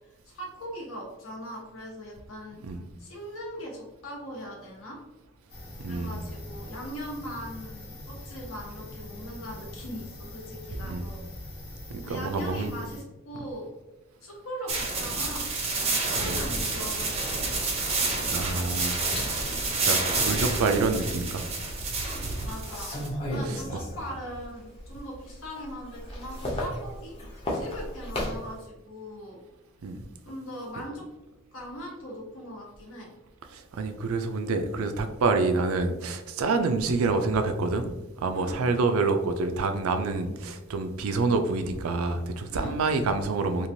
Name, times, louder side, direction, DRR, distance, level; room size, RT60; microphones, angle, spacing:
voice 1, 0.3-2.6 3.0-5.0 5.9-11.2 12.0-13.7 14.2-15.5 15.8-17.7 22.0-22.9 23.3-27.2 27.5-29.4 30.2-31.1 31.5-33.1 38.3-38.6 42.5-42.8, equal, 75° left, -2 dB, 1.0 m, -40 dB
sound 1, 5.5-13.0, left 1 dB, 50° left, 1.0 m, -43 dB
voice 2, 5.8-6.2 10.8-11.1 11.9-12.7 16.2-16.4 18.3-21.4 21.9-22.3 23.5-23.6 29.8-30.1 33.5-37.9 38.2-43.7, right 3 dB, 85° right, 7 dB, 0.4 m, -27 dB
sound 2, 14.7-23.1, right 3 dB, 30° right, 0.5 m, -29 dB
sound 3, 18.2-21.6 22.1-24.4 24.7-28.6, left 1 dB, 25° left, 0.6 m, -36 dB
3.0 x 2.4 x 2.6 m, 1.0 s
head